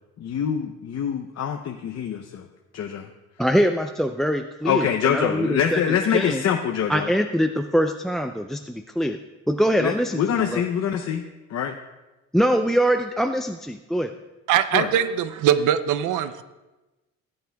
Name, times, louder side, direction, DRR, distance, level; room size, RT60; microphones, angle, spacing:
voice 1, 0.2-2.4 2.7-3.1 4.6-7.1 9.8-11.2 11.5-11.7 14.7-14.9, left 8 dB, 55° left, 4 dB, 0.7 m, -24 dB
voice 2, 3.4-6.4 6.9-9.2 9.5-10.6 12.3-14.1, equal, ahead, 7 dB, 0.4 m, -23 dB
voice 3, 14.5-16.4, right 9 dB, 85° right, 12 dB, 0.6 m, -21 dB
17.5 x 8.7 x 2.3 m, 1.1 s
cardioid pair, 90°, 30 cm